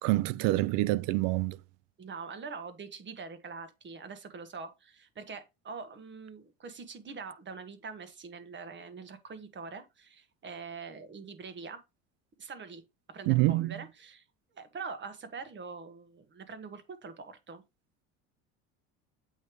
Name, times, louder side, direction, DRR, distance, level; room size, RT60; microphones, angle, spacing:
voice 1, 0.0-1.6 13.3-13.8, right 18 dB, 70° right, 0.6 m, -26 dB
voice 2, 2.0-11.8 12.4-12.8 13.1-14.2 14.5-17.6, right 5 dB, 35° right, 1.6 m, -44 dB
8.1 x 3.2 x 4.7 m
supercardioid pair, 85°, 34 cm